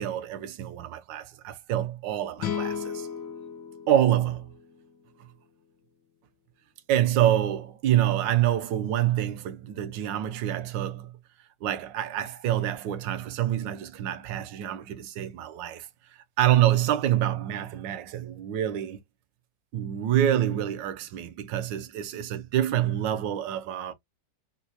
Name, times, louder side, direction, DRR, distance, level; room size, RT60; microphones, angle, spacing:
voice 1, 0.0-3.1 3.9-4.5 6.9-11.1 11.6-15.9 16.4-19.0 19.7-23.9, right 11 dB, 85° right, 1.3 m, -26 dB
sound 1, 2.4-5.7, left 7 dB, 85° left, 1.6 m, -36 dB
3.8 x 2.4 x 2.7 m
omnidirectional pair, 2.0 m